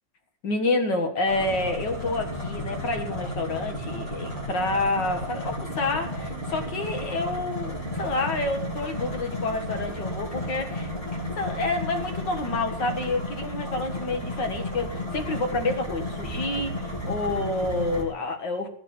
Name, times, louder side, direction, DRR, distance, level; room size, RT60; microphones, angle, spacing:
voice 1, 0.4-10.9 11.4-18.7, left 2 dB, 70° left, 6 dB, 2.4 m, -28 dB
sound 1, 1.3-18.0, left 1 dB, 25° left, 4.5 m, -33 dB
16.5 x 6.8 x 8.7 m, 0.63 s
omnidirectional pair, 2.0 m